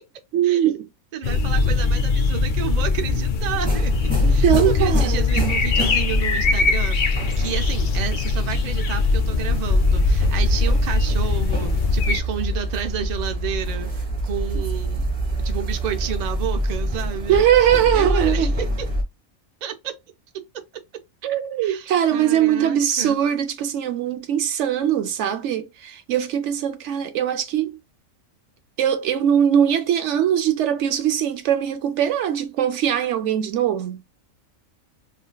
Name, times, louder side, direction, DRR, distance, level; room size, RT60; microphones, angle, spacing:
voice 1, 0.3-0.9 1.3-1.4 4.2-5.3 17.3-18.5 21.2-27.8 28.8-34.0, right 10 dB, 65° right, 0.8 m, -21 dB
voice 2, 1.1-15.1 15.4-17.4 17.9-18.7 19.6-19.9 21.6-23.2, right 8 dB, 80° right, 0.3 m, -31 dB
sound 1, 1.2-12.2, left 3 dB, 85° left, 0.4 m, -21 dB
sound 2, 3.6-19.0, right 1 dB, 25° right, 0.8 m, -27 dB
3.4 x 2.5 x 2.2 m
omnidirectional pair, 1.4 m